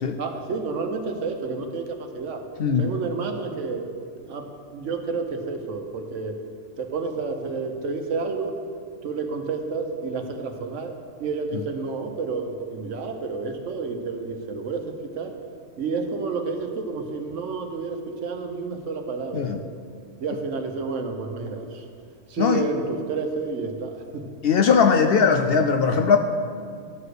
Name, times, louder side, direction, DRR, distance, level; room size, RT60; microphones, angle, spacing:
voice 1, 0.2-2.5 2.8-3.9 4.3-6.4 6.8-8.5 9.0-15.4 15.8-19.5 20.2-21.9 22.3-24.3, right 4 dB, 70° right, 5 dB, 1.2 m, -30 dB
voice 2, 24.4-26.2, left 6 dB, 60° left, 6 dB, 0.7 m, -19 dB
12.5 x 4.8 x 6.4 m, 2.2 s
omnidirectional pair, 1.3 m